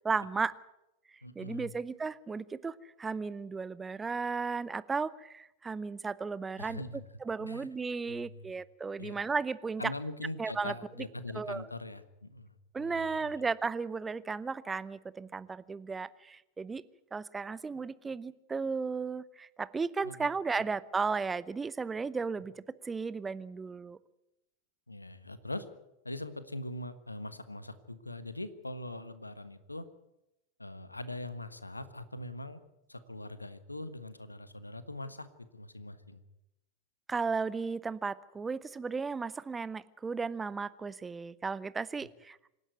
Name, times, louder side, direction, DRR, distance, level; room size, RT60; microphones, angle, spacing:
voice 1, 0.0-0.5 1.4-6.8 7.3-9.9 10.4-10.7 11.3-11.7 12.7-16.8 17.1-22.5 22.8-24.0 37.1-42.4, right 4 dB, 15° right, 18 dB, 0.6 m, -35 dB
voice 2, 1.2-1.8 6.6-7.1 7.4-7.7 8.1-8.5 9.0-9.2 9.8-13.3 20.0-20.3 20.5-20.6 24.9-25.7 26.0-29.9 30.6-32.6 32.9-36.2, left 1 dB, 85° left, 13 dB, 1.4 m, -42 dB
26.0 x 11.0 x 9.3 m, 0.90 s
figure-of-eight pair, 90°, 0 cm